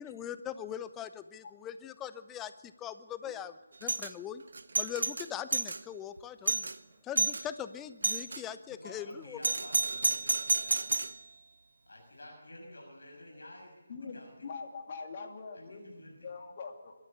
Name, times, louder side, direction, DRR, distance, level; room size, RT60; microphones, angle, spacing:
voice 1, 0.0-3.5 3.8-4.4 4.8-6.7 7.0-9.4, left 9 dB, 10° left, 12 dB, 0.6 m, -41 dB
Doorbell, 3.8-4.1 4.5-5.8 6.2-6.3 6.5-6.8 7.2-7.4 8.0-8.4 9.4-11.2, right 3 dB, 55° right, 0.9 m, -30 dB
voice 2, 8.3-11.1 11.8-14.5 15.5-16.3, left 1 dB, 60° left, 0 dB, 6.6 m, -51 dB
voice 3, 13.9-16.9, left 4 dB, 35° left, 3 dB, 2.6 m, -44 dB
23.0 x 13.0 x 8.7 m, 1.1 s
figure-of-eight pair, 155°, 0 cm